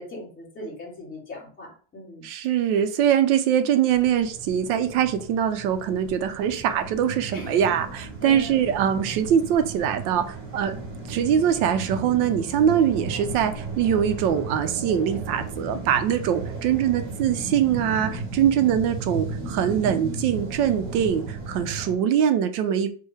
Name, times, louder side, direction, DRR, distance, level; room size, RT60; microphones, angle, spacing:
voice 1, 0.0-2.2 7.3-7.6 8.2-8.6, left 1 dB, 20° left, 1.6 m, -39 dB
voice 2, 2.2-10.8 11.1-22.9, right 9 dB, 70° right, 0.7 m, -23 dB
sound 1, 3.9-21.9, right 3 dB, 30° right, 1.0 m, -35 dB
4.6 x 2.2 x 3.4 m
cardioid pair, 180°, 46 cm